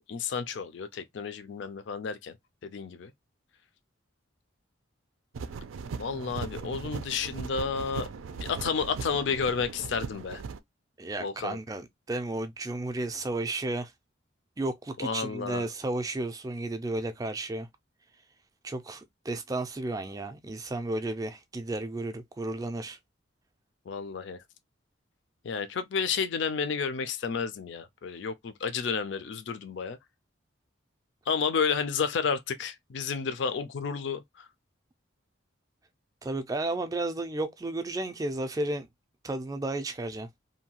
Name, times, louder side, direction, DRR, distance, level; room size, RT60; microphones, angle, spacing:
voice 1, 0.1-2.4 2.6-3.1 6.0-8.1 8.4-10.4 11.2-11.6 15.0-15.6 23.9-24.4 25.4-30.0 31.3-34.5, left 6 dB, 65° left, 0.4 m, -31 dB
sound 1, 5.3-10.6, right 5 dB, 85° right, 0.4 m, -38 dB
voice 2, 11.0-13.9 14.6-17.7 18.6-23.0 36.2-38.9 39.2-40.3, right 2 dB, 20° right, 0.3 m, -33 dB
2.7 x 2.2 x 2.8 m
head